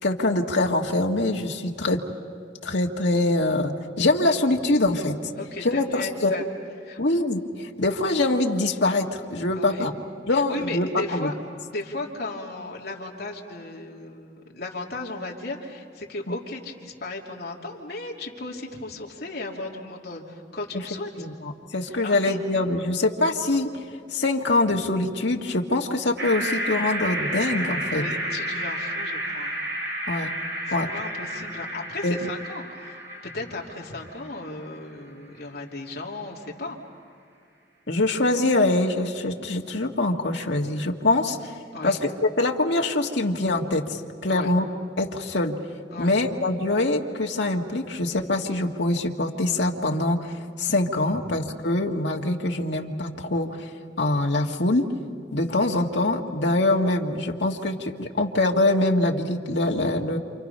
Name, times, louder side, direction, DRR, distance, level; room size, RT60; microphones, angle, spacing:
voice 1, 0.0-2.0 2.6-5.2 5.6-6.4 7.0-9.9 10.3-11.3 16.3-16.4 21.2-23.9 24.1-28.0 30.1-30.3 30.7-30.9 32.0-32.3 37.9-41.5 41.8-44.7 45.0-45.6 46.0-50.3 50.6-53.7 54.0-54.9 55.3-60.2, left 2 dB, 70° left, 1 dB, 1.8 m, -24 dB
voice 2, 5.3-6.4 6.8-7.0 9.6-9.9 10.3-11.4 11.7-21.3 22.0-22.4 27.8-29.6 30.7-36.8 41.7-42.0 44.3-44.5 45.9-46.1, left 2 dB, 55° left, -1 dB, 3.0 m, -35 dB
sound 1, 26.2-34.4, right 1 dB, 65° right, 7.3 m, -31 dB
29.0 x 28.5 x 5.6 m, 2.3 s
head